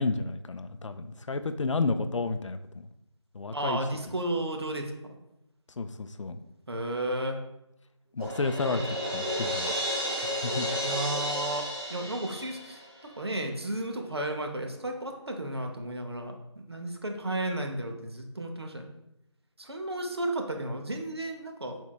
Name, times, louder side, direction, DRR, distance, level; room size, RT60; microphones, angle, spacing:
voice 1, 0.0-2.6 3.3-3.8 5.8-6.4 8.1-8.8 9.1-9.7 10.4-10.7, left 3 dB, 75° left, 10 dB, 0.4 m, -31 dB
voice 2, 3.5-5.2 6.7-7.4 10.8-18.9 19.6-21.8, right 1 dB, 55° right, 4 dB, 0.7 m, -33 dB
Crash cymbal, 8.2-13.1, equal, 5° right, 0.8 m, -32 dB
4.4 x 4.3 x 2.2 m, 0.87 s
figure-of-eight pair, 180°, 16 cm